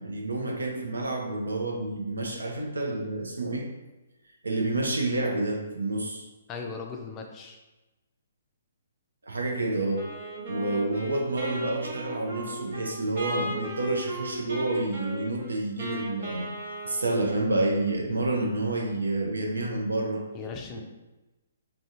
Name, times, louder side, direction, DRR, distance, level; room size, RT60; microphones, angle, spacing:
voice 1, 0.0-3.7 4.4-6.2 9.3-10.1 10.5-16.5 16.8-20.2 20.8-20.9, right 2 dB, 85° right, 1 dB, 0.6 m, -29 dB
voice 2, 6.5-7.6 20.3-20.8, left 5 dB, 25° left, 2 dB, 0.4 m, -38 dB
Wind instrument woodwind instrument, 10.0-17.6, right 1 dB, 55° right, 1.0 m, -37 dB
3.5 x 2.2 x 2.7 m, 1.1 s
figure-of-eight pair, 130°, 0 cm